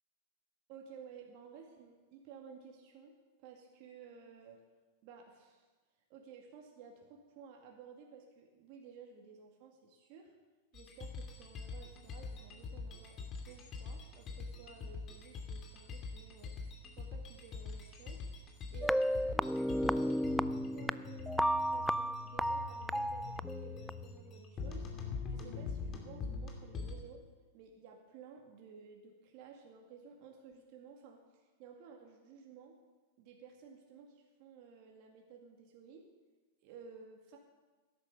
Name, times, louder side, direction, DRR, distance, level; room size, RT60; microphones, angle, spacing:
voice 1, 0.7-3.1 3.4-4.6 5.0-5.7 6.1-10.3 10.7-13.2 13.4-16.6 17.0-18.2 18.7-24.9 25.3-27.2 27.5-32.7 33.2-36.1 36.6-37.4, right 6 dB, 50° right, 1 dB, 2.1 m, -55 dB
sound 1, 10.7-26.9, left 4 dB, 35° left, 2.6 m, -44 dB
sound 2, 18.8-23.9, equal, ahead, 0.3 m, -33 dB
13.0 x 10.5 x 6.6 m, 1.3 s
hypercardioid pair, 110°, 0 cm